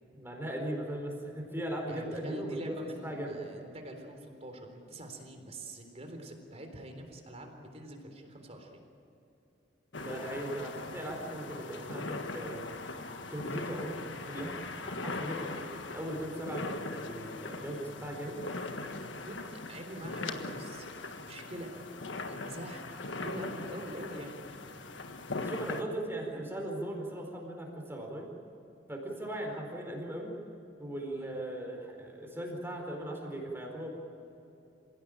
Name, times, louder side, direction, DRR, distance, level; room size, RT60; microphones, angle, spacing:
voice 1, 0.1-2.8 3.0-3.4 9.9-12.6 13.3-18.4 25.4-28.3 28.9-30.3 30.8-33.9, right 1 dB, 15° right, 0 dB, 4.6 m, -38 dB
voice 2, 1.9-8.8 19.2-20.9 21.2-21.8 22.2-24.4 31.1-31.3, right 1 dB, 35° right, 4 dB, 3.7 m, -45 dB
sound 1, 9.9-25.8, left 3 dB, 85° left, 1.5 m, -40 dB
27.5 x 17.0 x 9.0 m, 2.9 s
head